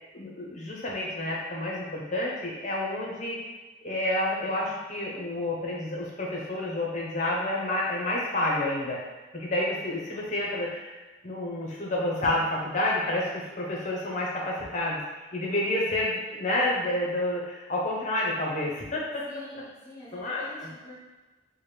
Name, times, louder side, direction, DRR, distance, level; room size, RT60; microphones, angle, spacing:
voice 1, 0.1-3.4 3.8-9.0 9.3-11.0 11.2-15.0 15.3-19.2 20.1-20.7, left 1 dB, 40° left, -3 dB, 0.8 m, -29 dB
voice 2, 19.3-20.9, left 1 dB, 20° left, -8 dB, 1.4 m, -47 dB
4.8 x 2.2 x 3.3 m, 1.2 s
head